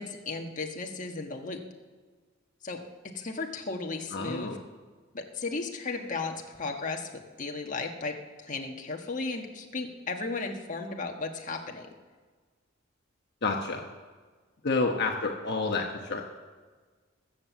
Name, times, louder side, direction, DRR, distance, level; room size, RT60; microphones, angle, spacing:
voice 1, 0.0-1.6 2.6-2.8 3.1-4.5 5.1-7.1 7.4-8.2 8.4-11.9, left 3 dB, 40° left, 2 dB, 1.5 m, -35 dB
voice 2, 4.1-4.6 13.4-13.8 14.6-16.2, left 3 dB, 55° left, 2 dB, 1.1 m, -29 dB
20.5 x 7.6 x 7.3 m, 1.5 s
head